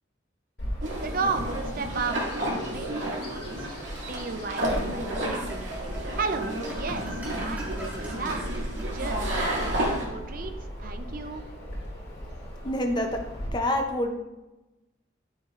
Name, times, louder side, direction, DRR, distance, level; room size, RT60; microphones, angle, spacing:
Bird vocalization bird call bird song, 0.6-13.5, equal, 55° left, 2.3 m, -37 dB
sound 1, 0.8-10.0, right 1 dB, 80° right, 2.3 m, -32 dB
voice 1, 1.0-3.8 4.1-5.6 6.1-8.6 8.9-9.2 10.0-10.5 10.8-11.4, right 4 dB, 45° right, 7 dB, 0.6 m, -34 dB
sound 2, 3.1-4.1 4.6-4.8 5.1-9.6, right 1 dB, 10° right, 1.5 m, -44 dB
voice 2, 12.6-13.2 13.5-14.2, left 1 dB, 25° left, 4 dB, 0.6 m, -27 dB
10.5 x 6.5 x 2.5 m, 1.0 s
head